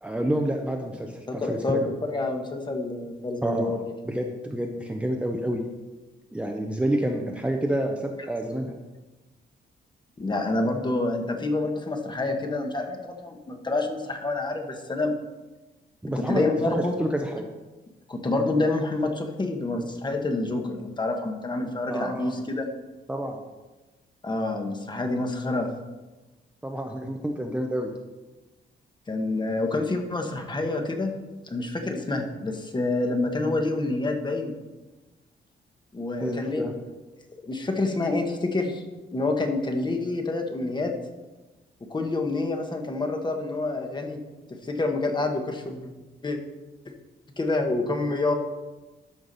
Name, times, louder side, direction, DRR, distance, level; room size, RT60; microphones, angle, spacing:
voice 1, 0.0-1.9 3.4-3.8 4.0-5.6 6.3-8.7 16.0-17.5 21.9-22.3 23.1-23.4 26.6-27.9 36.2-36.8, right 1 dB, 5° right, 1 dB, 0.7 m, -28 dB
voice 2, 1.3-3.8 10.2-15.1 16.1-16.9 18.1-22.7 24.2-25.7 29.1-31.1 31.4-34.5 35.9-36.6 37.4-38.8 39.1-40.9 41.9-44.2 44.5-45.9 46.2-46.4 47.4-48.3, left 2 dB, 25° left, 4 dB, 1.1 m, -27 dB
12.5 x 5.8 x 4.0 m, 1.2 s
wide cardioid pair, 150°, 19 cm